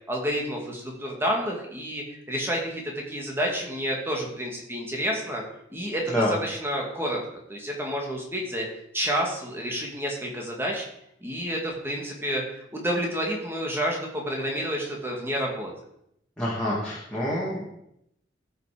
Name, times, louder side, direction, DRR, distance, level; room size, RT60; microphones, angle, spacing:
voice 1, 0.1-5.4 5.7-7.2 7.5-8.7 8.9-10.9 11.2-15.7, equal, 15° right, -1 dB, 2.2 m, -29 dB
voice 2, 16.4-17.6, equal, 5° left, -9 dB, 2.5 m, -27 dB
14.5 x 5.8 x 5.1 m, 0.77 s
head